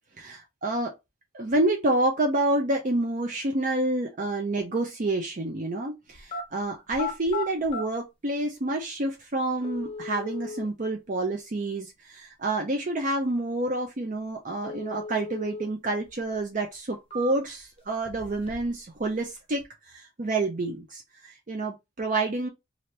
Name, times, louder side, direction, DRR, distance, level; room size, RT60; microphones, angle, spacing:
voice 1, 0.2-0.9 1.3-22.5, right 2 dB, 40° right, 0.6 m, -28 dB
sound 1, 6.1-6.4 6.9-7.8 8.8-8.9 9.6-10.7 14.6-15.7 16.1-16.2 16.8-17.6 18.0-18.8 19.1-19.6, left 4 dB, 30° left, 1.0 m, -36 dB
3.2 x 2.7 x 2.7 m
head